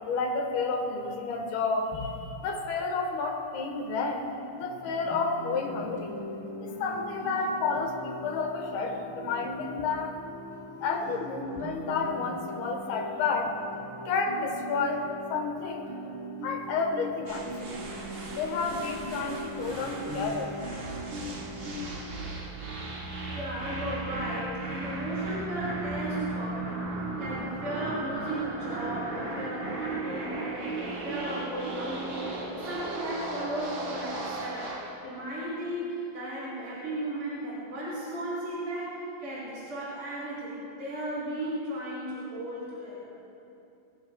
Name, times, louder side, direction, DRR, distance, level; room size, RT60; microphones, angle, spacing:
voice 1, 0.0-6.2 6.6-10.3 10.8-13.5 14.0-15.9 16.4-17.8 18.3-20.5, left 4 dB, 70° left, 3 dB, 3.0 m, -31 dB
Guitar, 4.6-22.0, left 1 dB, 80° right, 0.6 m, -40 dB
sound 1, 17.3-34.9, right 3 dB, 45° right, 2.2 m, -36 dB
voice 2, 23.3-26.9 27.2-34.8 35.0-43.1, right 1 dB, 30° right, -10 dB, 4.6 m, -35 dB
25.0 x 16.0 x 2.3 m, 2.7 s
omnidirectional pair, 5.1 m